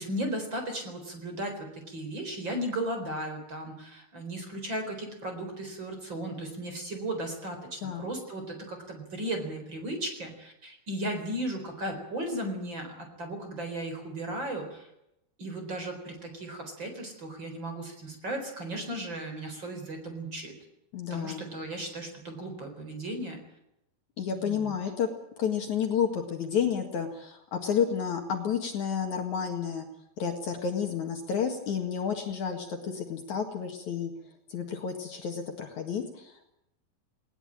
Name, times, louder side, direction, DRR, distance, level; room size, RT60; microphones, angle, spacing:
voice 1, 0.0-14.9 15.4-20.5 21.1-23.4 24.3-24.7, right 1 dB, 30° right, 5 dB, 4.7 m, -36 dB
voice 2, 20.9-21.5 24.2-25.1 25.4-29.9 30.2-34.1 34.5-36.3, left 7 dB, 55° left, 3 dB, 2.9 m, -30 dB
19.5 x 19.0 x 8.9 m, 0.82 s
omnidirectional pair, 4.3 m